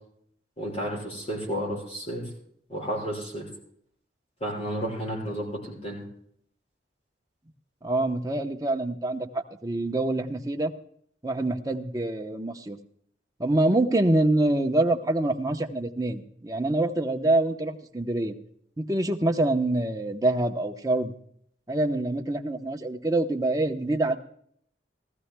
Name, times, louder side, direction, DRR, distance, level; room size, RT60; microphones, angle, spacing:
voice 1, 0.6-2.2 2.7-3.5 4.4-6.0, equal, 35° left, -1 dB, 5.9 m, -32 dB
voice 2, 7.8-10.7 11.2-12.8 13.4-18.3 18.8-21.1 21.7-24.2, right 2 dB, 20° right, 4 dB, 0.8 m, -25 dB
19.0 x 14.5 x 2.2 m, 0.66 s
head